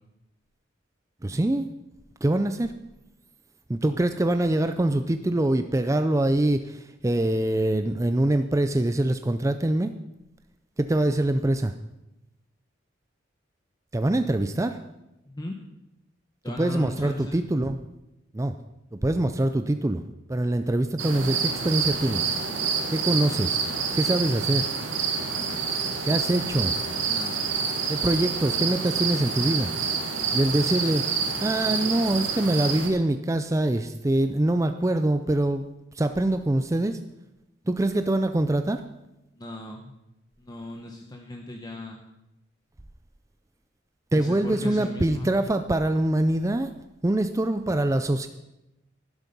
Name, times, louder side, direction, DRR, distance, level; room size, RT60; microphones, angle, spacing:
voice 1, 1.2-1.7 2.2-2.7 3.7-9.9 10.8-11.7 13.9-14.8 16.5-17.8 18.3-18.5 18.9-20.0 20.3-22.3 22.9-23.6 23.9-24.7 26.0-26.8 27.9-29.7 30.3-31.0 31.4-35.6 35.9-37.0 37.7-38.8 44.1-46.7 47.0-48.3, right 1 dB, 15° right, 9 dB, 0.4 m, -24 dB
voice 2, 15.3-15.6 16.4-17.4 27.1-27.5 39.4-39.9 40.4-42.0 44.1-45.3, left 1 dB, 20° left, 2 dB, 1.0 m, -37 dB
sound 1, 21.0-32.9, right 5 dB, 90° right, 1.9 m, -28 dB
12.0 x 11.5 x 5.4 m, 0.92 s
head